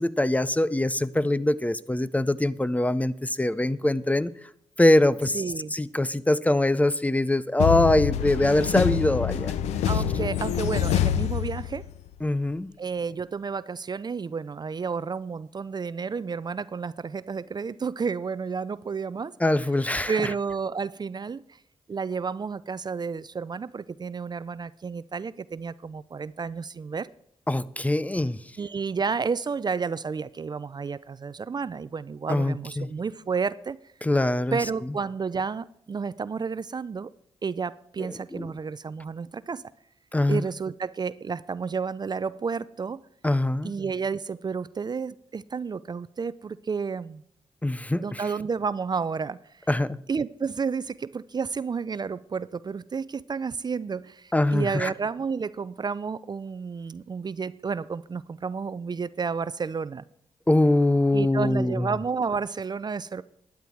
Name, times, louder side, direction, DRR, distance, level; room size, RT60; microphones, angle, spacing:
voice 1, 0.0-4.3 4.8-5.4 5.7-9.5 12.2-12.7 19.4-20.1 27.5-28.4 32.3-32.9 34.0-34.6 38.4-38.5 40.1-40.4 43.2-43.7 47.6-48.2 49.7-50.0 54.3-54.9 60.5-61.9, left 1 dB, 15° left, 0.6 m, -23 dB
voice 2, 5.3-5.7 9.9-11.9 12.8-19.3 20.1-21.4 21.9-27.1 28.6-33.8 34.5-37.1 37.4-39.6 40.3-43.0 43.6-47.2 48.0-49.4 50.1-60.0 61.1-63.2, right 5 dB, 40° right, 0.5 m, -31 dB
sound 1, 7.6-12.1, left 10 dB, 90° left, 0.5 m, -26 dB
12.0 x 9.6 x 4.6 m
supercardioid pair, 55°, 11 cm